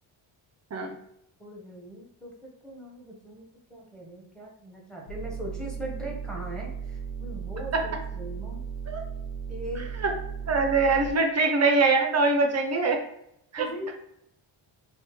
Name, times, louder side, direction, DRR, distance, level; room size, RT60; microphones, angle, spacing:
voice 1, 1.4-8.6 9.5-9.9 13.6-14.0, equal, ahead, -3 dB, 0.7 m, -40 dB
sound 1, 5.1-11.1, right 7 dB, 75° left, 0.6 m, -36 dB
voice 2, 9.8-10.1 10.5-13.0 13.5-13.7, right 3 dB, 35° right, 3 dB, 0.4 m, -23 dB
3.3 x 2.1 x 2.9 m, 0.77 s
wide cardioid pair, 130°, 49 cm